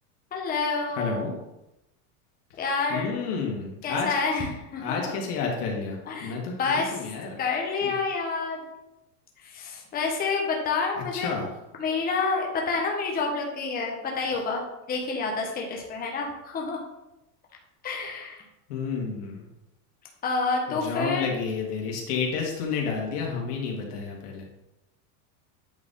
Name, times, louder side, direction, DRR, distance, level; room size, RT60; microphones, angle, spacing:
voice 1, 0.3-1.2 2.6-3.2 3.8-5.1 6.1-6.3 6.6-7.0 7.4-8.6 9.4-11.3 11.8-14.6 14.9-16.8 17.8-18.4 20.2-21.3, left 4 dB, 20° left, 0 dB, 1.2 m, -28 dB
voice 2, 0.9-1.4 2.9-4.1 4.8-7.4 7.8-8.0 11.0-11.5 18.7-19.5 20.7-24.4, left 5 dB, 90° left, 0 dB, 2.2 m, -30 dB
8.7 x 4.1 x 3.8 m, 0.91 s
supercardioid pair, 150°, 45 cm